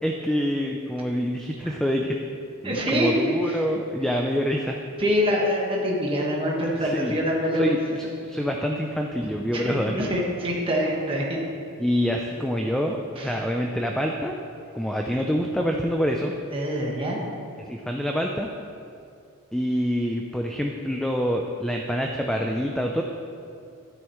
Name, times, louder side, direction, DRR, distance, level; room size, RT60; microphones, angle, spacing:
voice 1, 0.0-2.2 2.6-4.8 6.8-7.2 7.6-10.0 11.8-14.4 14.7-16.3 17.7-18.5 19.5-23.0, equal, 5° left, 1 dB, 0.4 m, -26 dB
voice 2, 2.6-3.2 3.4-3.6 5.0-7.8 9.5-11.4 13.2-13.3 16.5-17.2, equal, 25° right, -3 dB, 1.4 m, -25 dB
12.0 x 9.8 x 3.1 m, 2.5 s
head